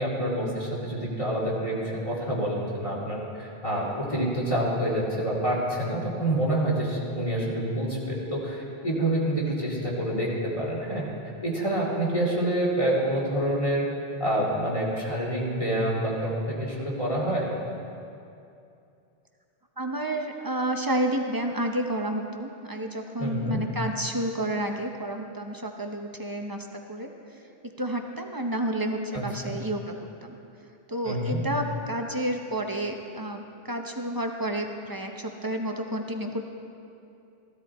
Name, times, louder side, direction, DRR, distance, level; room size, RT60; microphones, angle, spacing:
voice 1, 0.0-11.1 11.4-13.9 14.2-17.5 23.2-23.6 29.1-29.6 31.0-31.4, right 1 dB, 30° left, -5 dB, 2.5 m, -27 dB
voice 2, 19.8-27.1 27.8-29.9 30.2-30.4 30.9-36.5, right 1 dB, 20° right, 3 dB, 0.8 m, -30 dB
15.5 x 13.0 x 4.3 m, 2.6 s
omnidirectional pair, 1.1 m